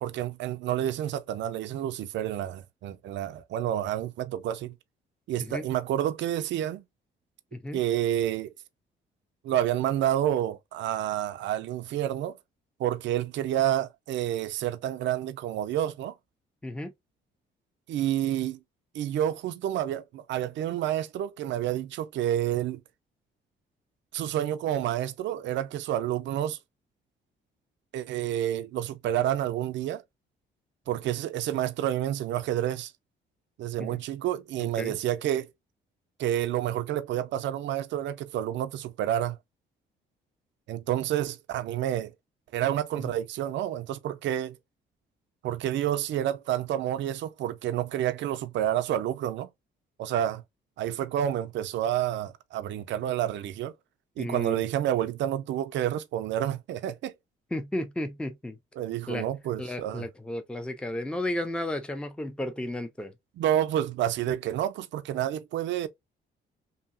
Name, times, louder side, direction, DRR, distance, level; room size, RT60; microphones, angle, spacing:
voice 1, 0.0-4.7 5.3-6.8 7.7-8.5 9.4-12.4 12.8-16.1 17.9-18.6 18.9-22.8 24.1-26.6 27.9-30.0 30.9-32.9 33.6-35.5 36.2-39.4 40.7-42.1 42.5-44.6 45.4-49.5 50.0-50.4 50.8-53.7 54.2-57.1 58.8-60.1 63.4-65.9, right 11 dB, 65° right, 0.4 m, -29 dB
voice 2, 16.6-16.9 33.8-34.0 34.6-35.0 43.0-43.1 54.2-54.6 57.5-58.6 59.1-59.3 59.6-63.1, left 1 dB, 5° left, 0.5 m, -33 dB
2.8 x 2.7 x 2.5 m
cardioid pair, 90°, 20 cm